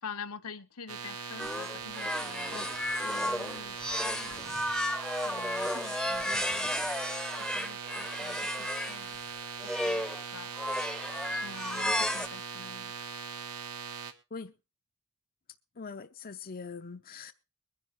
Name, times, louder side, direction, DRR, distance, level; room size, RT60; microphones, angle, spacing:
voice 1, 0.0-2.6 3.0-4.6 5.2-6.9 7.5-9.2 9.6-10.5 11.3-12.9, left 5 dB, 80° left, 1.2 m, -46 dB
sound 1, 0.9-14.1, right 6 dB, 80° right, 1.7 m, -41 dB
sound 2, 1.4-9.0 9.6-10.2 10.6-12.3, left 1 dB, ahead, 0.8 m, -33 dB
voice 2, 15.8-17.3, left 4 dB, 40° left, 0.6 m, -42 dB
22.5 x 10.0 x 3.1 m
head